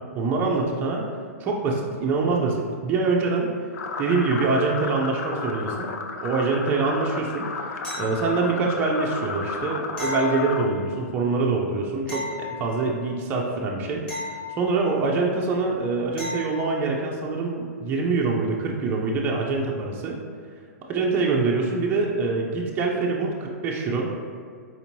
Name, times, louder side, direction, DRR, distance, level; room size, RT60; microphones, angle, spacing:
voice 1, 0.1-1.1 1.4-3.5 4.0-5.9 6.2-7.5 8.0-14.0 14.5-20.2 20.9-24.1, right 3 dB, 20° right, -2 dB, 0.4 m, -24 dB
sound 1, 3.7-10.7, left 4 dB, 85° left, 0.4 m, -33 dB
sound 2, 7.8-8.6 10.0-11.0 12.1-13.1 14.1-15.1 16.2-16.8 19.5-19.6, left 4 dB, 10° left, 0.7 m, -35 dB
4.3 x 2.8 x 2.6 m, 2.1 s
hypercardioid pair, 145°, 8 cm